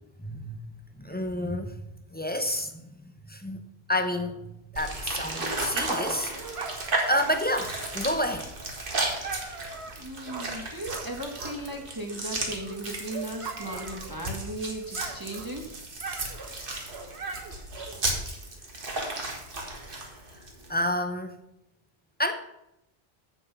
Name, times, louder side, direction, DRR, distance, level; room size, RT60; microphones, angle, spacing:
voice 1, 0.2-0.6 1.0-1.8 2.1-2.9 3.3-3.6 3.9-6.3 6.7-8.5 20.7-21.4 22.2-22.3, left 1 dB, 10° left, 0.7 m, -29 dB
sound 1, 4.8-20.8, right 2 dB, 60° right, 1.8 m, -34 dB
Dog, 6.0-11.9 12.2-14.5 14.8-18.2, right 4 dB, 85° right, 1.3 m, -41 dB
voice 2, 10.0-15.6 20.6-20.7, right 1 dB, 20° right, 1.1 m, -36 dB
7.8 x 7.2 x 5.5 m
omnidirectional pair, 1.0 m